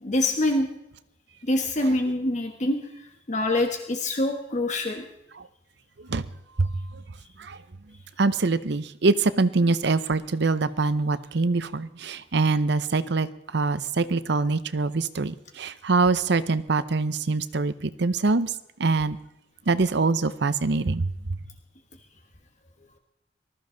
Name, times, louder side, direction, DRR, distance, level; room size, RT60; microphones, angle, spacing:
voice 1, 0.0-0.7 1.5-5.0, left 1 dB, 40° left, 3 dB, 1.4 m, -25 dB
voice 2, 6.6-7.0 7.4-7.6 8.2-18.5 18.8-19.2 19.7-21.1, right 3 dB, 65° right, 14 dB, 0.7 m, -24 dB
19.5 x 14.0 x 3.9 m, 0.85 s
head